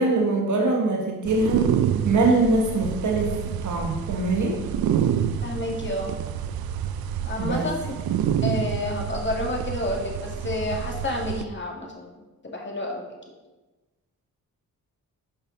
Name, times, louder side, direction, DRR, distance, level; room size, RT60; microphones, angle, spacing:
voice 1, 0.0-1.7 2.0-4.6 7.4-7.6, right 3 dB, 55° right, 0 dB, 1.4 m, -23 dB
sound 1, 1.2-11.4, right 9 dB, 80° right, 0.5 m, -28 dB
voice 2, 5.4-6.1 7.2-8.0 8.4-12.1 12.4-13.1, left 1 dB, 30° left, 0 dB, 2.1 m, -30 dB
8.8 x 5.6 x 3.9 m, 1.1 s
cardioid pair, 60°, 36 cm